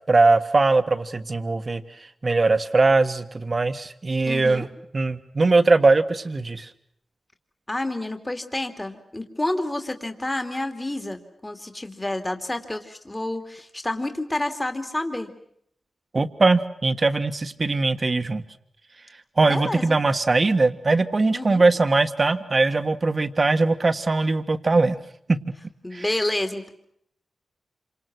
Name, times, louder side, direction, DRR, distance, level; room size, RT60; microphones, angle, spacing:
voice 1, 0.1-1.8 2.2-4.7 4.9-6.6 16.1-18.4 19.4-25.0 25.3-25.4 25.9-26.0, right 3 dB, 45° right, 9 dB, 1.6 m, -20 dB
voice 2, 4.3-4.7 7.7-15.3 19.4-20.0 21.3-21.6 25.8-26.7, left 1 dB, 20° left, 7 dB, 2.7 m, -29 dB
27.5 x 26.0 x 6.2 m, 0.70 s
cardioid pair, 60°, 0 cm